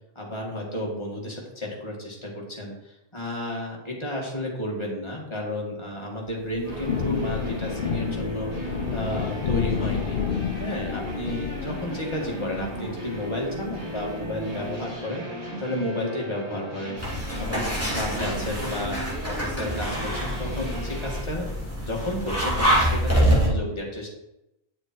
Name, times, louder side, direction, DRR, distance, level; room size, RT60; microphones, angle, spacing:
voice 1, 0.2-8.5 8.9-10.2 10.5-15.2 15.6-17.0 17.4-21.5 21.8-24.1, left 1 dB, 25° left, -2 dB, 2.4 m, -32 dB
Thunder / Rain, 6.3-14.9, left 8 dB, 55° left, 0.7 m, -31 dB
Western-style sliding guitar, 6.6-21.2, equal, 80° right, 3.3 m, -36 dB
sound 1, 17.0-23.5, equal, 10° right, 3.1 m, -25 dB
10.0 x 6.8 x 4.6 m, 0.87 s
omnidirectional pair, 1.1 m